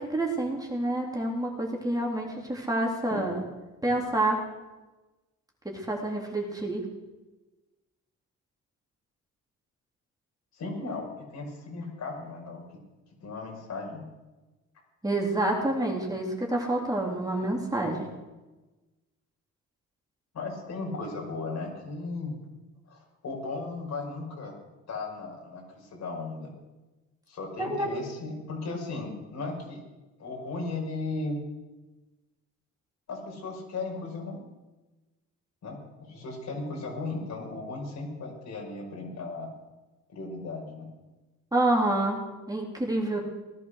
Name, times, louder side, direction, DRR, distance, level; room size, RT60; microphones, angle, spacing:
voice 1, 0.0-3.4 3.8-4.4 5.7-6.9 15.0-18.1 27.6-27.9 41.5-42.2 42.5-43.2, right 1 dB, 10° right, -1 dB, 3.5 m, -28 dB
voice 2, 10.5-12.6 13.2-14.0 20.3-22.4 22.9-24.5 24.9-26.5 27.3-29.8 30.2-31.4 33.1-34.4 35.6-39.5 40.1-40.9, left 3 dB, 65° left, 0 dB, 5.9 m, -36 dB
17.5 x 11.5 x 6.6 m, 1.1 s
cardioid pair, 90°, 30 cm